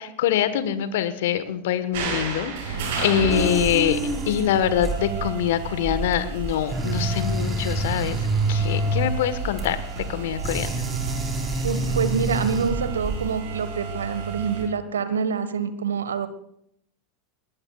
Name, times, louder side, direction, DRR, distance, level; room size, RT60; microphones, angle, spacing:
voice 1, 0.0-4.0 4.3-10.7, left 10 dB, 65° left, 12 dB, 1.4 m, -24 dB
sound 1, 1.9-14.6, right 4 dB, 60° right, 7.7 m, -33 dB
sound 2, 3.3-13.4, right 2 dB, 15° right, 4.2 m, -28 dB
voice 2, 11.6-16.3, right 6 dB, 80° right, 12 dB, 1.4 m, -26 dB
21.0 x 19.5 x 2.4 m, 0.75 s
figure-of-eight pair, 85°, 0 cm